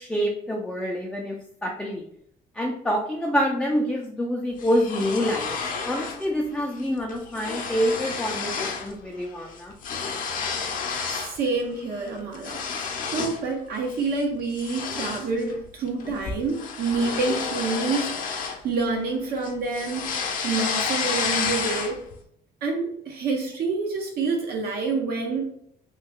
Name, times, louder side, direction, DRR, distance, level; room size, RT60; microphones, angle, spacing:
voice 1, 0.0-1.4 1.6-2.0 2.6-5.6 5.8-9.7, equal, 5° left, -1 dB, 0.4 m, -26 dB
sound 1, 4.6-6.3 6.6-6.8 7.1-8.9 9.2-11.4 11.8-13.5 13.9-14.1 14.5-19.1 19.4-22.1, left 5 dB, 55° left, 0.6 m, -30 dB
voice 2, 11.1-20.0 20.4-22.0 22.6-25.5, right 4 dB, 65° right, 1 dB, 0.9 m, -28 dB
3.2 x 2.2 x 3.5 m, 0.67 s
cardioid pair, 110°, 17 cm